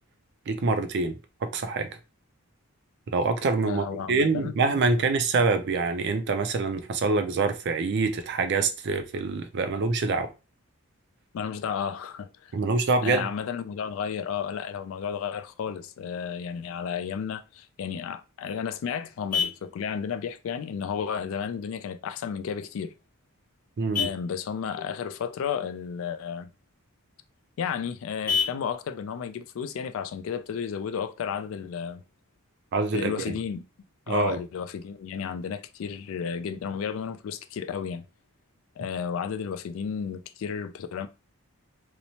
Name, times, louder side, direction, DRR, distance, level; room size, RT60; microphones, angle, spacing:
voice 1, 0.5-1.2 1.4-1.9 3.1-10.3 12.5-13.3 23.8-24.1 32.7-33.3 34.1-34.4, right 4 dB, 50° right, 0.4 m, -25 dB
voice 2, 3.7-4.6 11.3-12.5 13.0-22.9 24.0-26.5 27.6-32.0 32.9-33.6 34.1-38.0 38.8-41.1, left 7 dB, 65° left, 0.3 m, -33 dB
Vehicle horn car horn honking, 18.0-31.0, left 7 dB, 40° left, 0.7 m, -37 dB
2.9 x 2.0 x 2.7 m
head